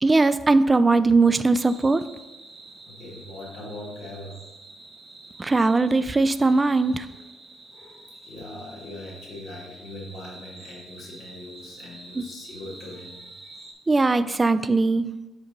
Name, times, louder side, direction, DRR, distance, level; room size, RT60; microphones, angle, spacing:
voice 1, 0.0-2.0 5.4-7.1 12.2-12.3 13.9-15.1, right 3 dB, 25° right, 13 dB, 0.3 m, -20 dB
sound 1, 1.5-13.7, right 2 dB, 50° right, 1.7 m, -47 dB
voice 2, 2.9-4.5 7.0-7.1 7.7-13.6, left 1 dB, 70° left, -5 dB, 1.9 m, -41 dB
5.2 x 4.7 x 3.9 m, 1.0 s
cardioid pair, 90°, 0 cm